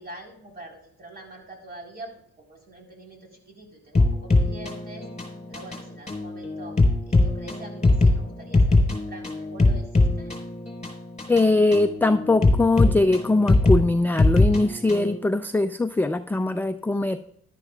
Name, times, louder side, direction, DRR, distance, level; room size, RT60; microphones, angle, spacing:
voice 1, 0.0-5.1 5.5-6.8 7.1-10.3, right 2 dB, 30° right, 0 dB, 4.1 m, -44 dB
sound 1, 3.9-15.2, left 2 dB, 20° left, 4.3 m, -22 dB
voice 2, 11.3-17.2, left 2 dB, 5° left, 9 dB, 0.4 m, -21 dB
13.5 x 11.5 x 2.3 m, 0.70 s
cardioid pair, 90°, 30 cm